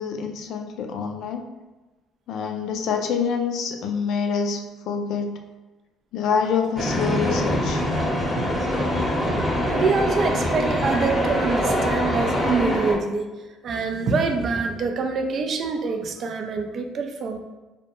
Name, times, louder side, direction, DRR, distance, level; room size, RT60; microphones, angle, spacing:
voice 1, 0.0-1.4 2.3-5.4 6.1-7.9, left 6 dB, 65° left, 4 dB, 0.3 m, -26 dB
sound 1, 6.8-12.9, equal, 5° left, 0.8 m, -24 dB
voice 2, 9.7-13.3 13.6-17.4, right 4 dB, 55° right, 5 dB, 0.3 m, -25 dB
2.1 x 2.1 x 2.9 m, 1.2 s
hypercardioid pair, 65°, 0 cm